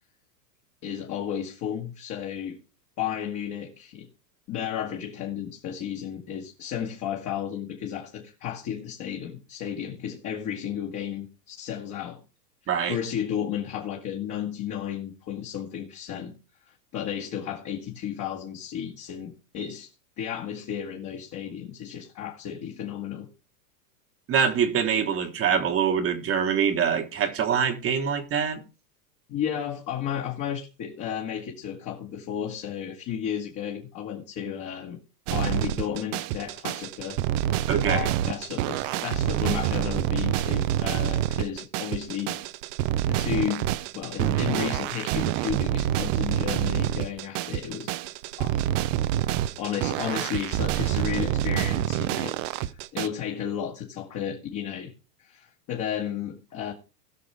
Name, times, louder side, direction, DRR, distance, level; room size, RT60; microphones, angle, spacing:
voice 1, 0.8-2.6 3.0-4.1 4.5-12.2 12.9-16.3 16.7-19.9 20.2-23.3 29.3-35.0 35.3-37.2 37.8-42.4 43.1-43.7 43.9-47.9 48.4-48.7 49.6-54.9 55.2-56.7, left 9 dB, 35° left, 1.8 m, -33 dB
voice 2, 12.7-13.0 24.3-28.6 37.7-38.1, right 7 dB, 25° right, 1.4 m, -24 dB
sound 1, 35.3-53.1, right 13 dB, 50° right, 0.7 m, -27 dB
18.5 x 6.2 x 3.4 m
hypercardioid pair, 125°, 50 cm